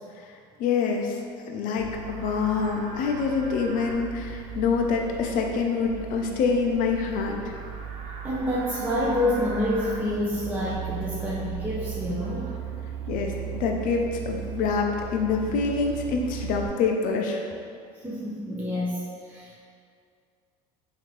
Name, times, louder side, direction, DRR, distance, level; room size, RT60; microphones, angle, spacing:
voice 1, 0.6-7.4 13.1-17.4, left 5 dB, 60° left, 2 dB, 0.5 m, -26 dB
Livestock farm animals working animals, 1.8-16.7, right 8 dB, 70° right, 0.5 m, -37 dB
voice 2, 8.2-12.5 18.0-19.6, left 1 dB, 10° right, -7 dB, 0.6 m, -28 dB
3.5 x 2.7 x 3.1 m, 2.3 s
supercardioid pair, 100°, 16 cm